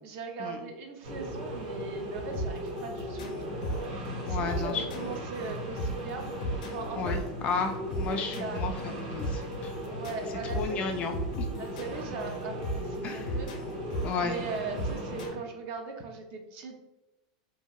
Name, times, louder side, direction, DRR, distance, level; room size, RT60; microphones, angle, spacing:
voice 1, 0.0-7.1 8.3-8.6 9.9-11.0 11.5-13.5 14.2-16.8, right 4 dB, 45° right, 3 dB, 0.5 m, -40 dB
sound 1, 1.0-15.3, equal, 70° right, 1.0 m, -37 dB
sound 2, 2.3-15.3, equal, 85° left, 0.7 m, -37 dB
voice 2, 4.3-4.8 7.0-9.7 10.4-11.5 13.0-13.3 14.0-14.4, left 5 dB, 30° left, 4 dB, 0.3 m, -33 dB
2.8 x 2.8 x 2.3 m, 0.96 s
supercardioid pair, 155°, 4 cm